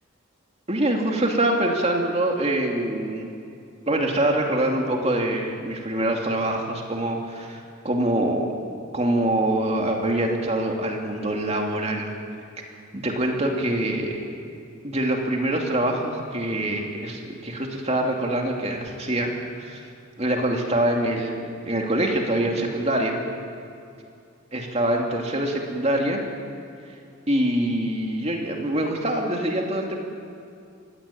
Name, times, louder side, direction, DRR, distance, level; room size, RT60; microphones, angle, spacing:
voice 1, 0.7-3.3 3.9-8.5 8.9-12.1 12.6-12.7 12.9-14.2 14.8-19.3 19.6-19.8 20.2-23.2 24.5-26.2 27.3-30.0, right 1 dB, 30° right, 1 dB, 2.6 m, -24 dB
23.5 x 17.0 x 8.8 m, 2.5 s
head